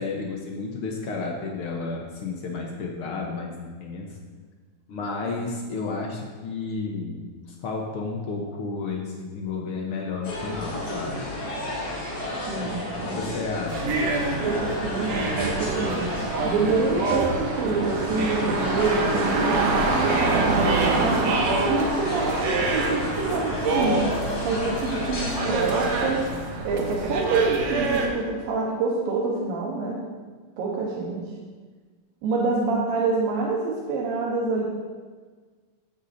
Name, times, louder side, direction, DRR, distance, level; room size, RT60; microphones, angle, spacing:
voice 1, 0.0-4.1 4.9-7.2 7.6-11.3 12.6-14.0, left 4 dB, 90° left, -1 dB, 1.2 m, -32 dB
sound 1, 10.2-26.2, left 1 dB, 30° left, 4.1 m, -32 dB
voice 2, 12.5-13.2 14.4-16.0 16.4-21.3 21.7-24.1 24.4-26.3 26.6-30.0 30.6-31.3 32.2-34.7, right 4 dB, 85° right, -3 dB, 3.0 m, -26 dB
sound 2, 13.7-28.1, right 3 dB, 60° right, 1.9 m, -26 dB
14.5 x 9.8 x 2.7 m, 1.5 s
omnidirectional pair, 4.0 m